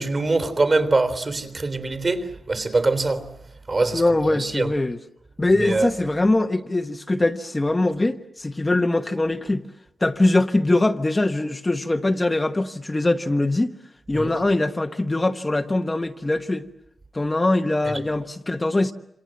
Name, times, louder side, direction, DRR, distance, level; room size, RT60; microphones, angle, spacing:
voice 1, 0.0-3.3 3.7-4.7 5.5-5.9 14.1-14.3 17.9-18.0, right 3 dB, 35° right, 3.5 m, -23 dB
voice 2, 3.9-5.0 5.4-9.6 10.0-13.7 14.1-16.6 17.1-18.9, left 2 dB, 20° left, 1.1 m, -22 dB
28.0 x 27.0 x 7.6 m
wide cardioid pair, 155°, 0 cm